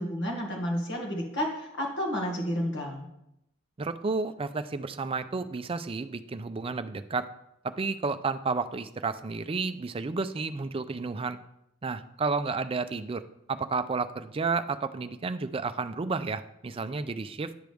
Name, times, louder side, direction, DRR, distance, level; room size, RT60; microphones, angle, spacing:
voice 1, 0.0-3.1, equal, 60° left, -1 dB, 1.9 m, -31 dB
voice 2, 3.8-7.3 7.6-11.4 11.8-13.2 13.5-17.5, right 4 dB, 25° right, 11 dB, 0.4 m, -31 dB
10.5 x 6.2 x 3.5 m, 0.81 s
head